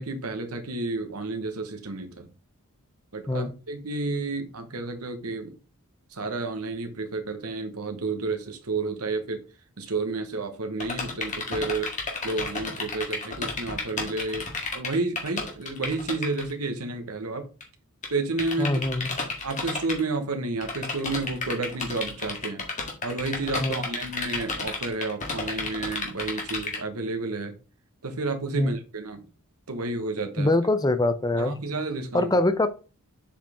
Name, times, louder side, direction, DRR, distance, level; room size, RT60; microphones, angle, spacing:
voice 1, 0.0-2.3 3.1-5.5 6.1-9.4 9.8-11.9 12.2-17.5 18.1-18.8 19.4-22.6 23.0-27.6 28.0-29.2 29.7-30.5 31.4-32.3, right 3 dB, 85° right, 5 dB, 1.3 m, -31 dB
sound 1, 10.8-16.5 17.6-17.7 18.0-18.1 18.4-20.0 20.6-26.8, left 4 dB, 35° left, 1.9 m, -31 dB
voice 2, 18.6-19.2 23.6-23.8 28.5-28.7 30.4-31.5 32.1-32.7, left 2 dB, 15° left, 10 dB, 0.6 m, -23 dB
7.2 x 5.0 x 3.6 m, 0.34 s
head